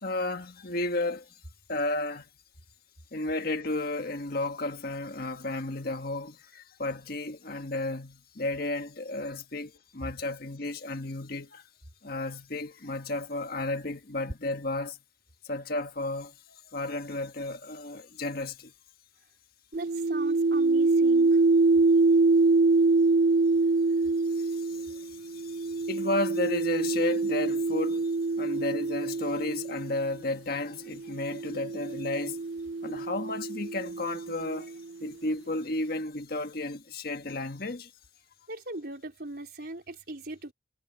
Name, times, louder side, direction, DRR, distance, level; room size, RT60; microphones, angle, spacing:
voice 1, 0.0-1.4 1.7-2.3 3.1-11.6 12.0-15.0 15.4-18.7 24.3-28.1 28.4-32.4 32.8-34.7 35.0-37.9, left 2 dB, 55° left, 1.6 m, -33 dB
voice 2, 19.7-21.4 38.5-40.5, right 2 dB, 55° right, 4.5 m, -39 dB
sound 1, 19.7-30.1 31.0-34.7, right 3 dB, 75° right, 0.8 m, -25 dB
head